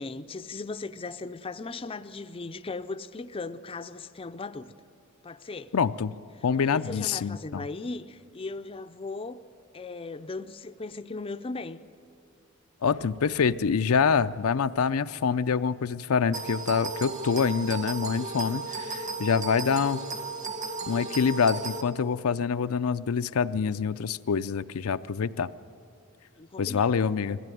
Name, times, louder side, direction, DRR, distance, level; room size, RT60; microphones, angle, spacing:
voice 1, 0.0-4.7 5.2-5.7 6.6-9.4 9.7-11.8 26.4-27.0, left 3 dB, 25° left, 10 dB, 0.5 m, -37 dB
voice 2, 5.7-6.1 6.4-7.6 12.8-20.0 20.9-25.5 26.6-27.4, left 6 dB, 85° left, 11 dB, 0.5 m, -26 dB
sound 1, 16.3-21.8, right 4 dB, 35° right, 1.6 m, -35 dB
21.0 x 15.5 x 9.2 m, 2.6 s
head